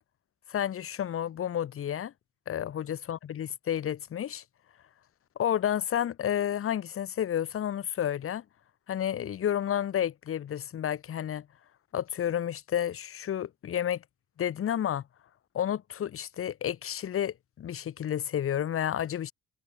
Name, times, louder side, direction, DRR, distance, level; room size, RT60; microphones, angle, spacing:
voice 1, 0.5-2.1 2.5-4.4 5.4-8.4 8.9-11.5 11.9-14.0 14.4-15.0 15.5-19.3, left 10 dB, 45° left, 0.8 m, -31 dB
cardioid pair, 90°, 30 cm